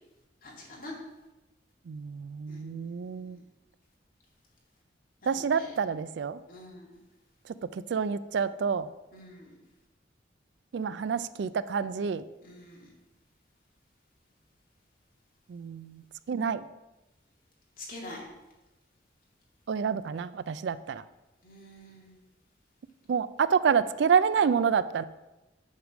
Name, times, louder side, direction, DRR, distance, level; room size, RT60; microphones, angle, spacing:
voice 1, 0.4-0.9 2.5-2.8 5.2-5.7 6.5-6.9 9.1-9.5 12.4-12.9 17.8-18.2 21.4-22.1, left 1 dB, 50° left, -3 dB, 2.4 m, -45 dB
voice 2, 1.9-3.4 5.3-6.4 7.5-8.9 10.7-12.2 15.5-16.0 16.3-16.6 19.7-21.0 23.1-25.0, right 6 dB, 65° right, 15 dB, 0.3 m, -28 dB
8.1 x 4.9 x 6.2 m, 1.0 s
head